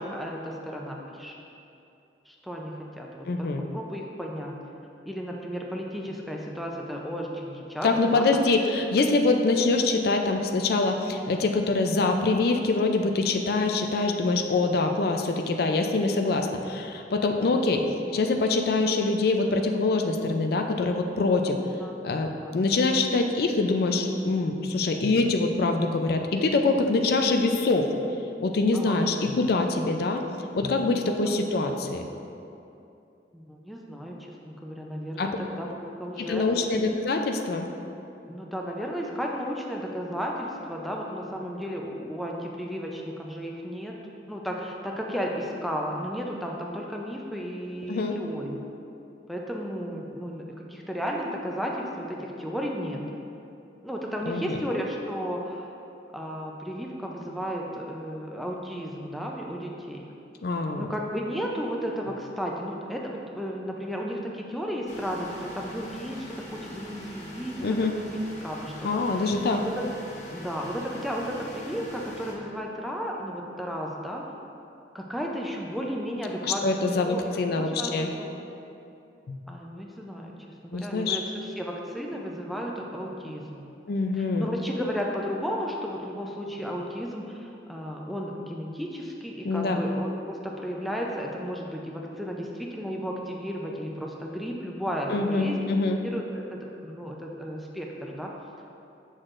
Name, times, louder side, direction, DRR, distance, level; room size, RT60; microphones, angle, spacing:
voice 1, 0.0-1.3 2.3-4.6 5.1-8.2 17.4-17.6 21.8-22.0 22.4-22.6 28.7-29.1 30.9-31.3 33.3-34.2 34.4-35.7 36.0-36.5 38.3-43.9 44.3-48.6 49.3-53.0 53.8-55.7 56.1-60.1 60.8-67.7 68.4-69.2 69.5-69.8 70.3-74.2 74.9-78.4 79.5-80.3 80.6-83.7 84.1-95.6 95.9-98.3, equal, ahead, -1 dB, 0.5 m, -34 dB
voice 2, 3.3-3.6 7.8-21.6 22.0-27.9 28.4-30.2 30.5-32.0 35.2-35.3 36.2-37.7 47.9-48.2 54.3-54.6 60.4-60.9 67.6-68.0 68.8-69.6 76.4-78.1 79.3-79.4 80.7-81.2 83.9-84.5 89.4-89.8 95.1-96.0, left 3 dB, 60° left, 4 dB, 0.4 m, -24 dB
sound 1, 64.9-72.3, left 1 dB, 40° left, 0.8 m, -42 dB
7.8 x 6.3 x 2.5 m, 2.7 s
head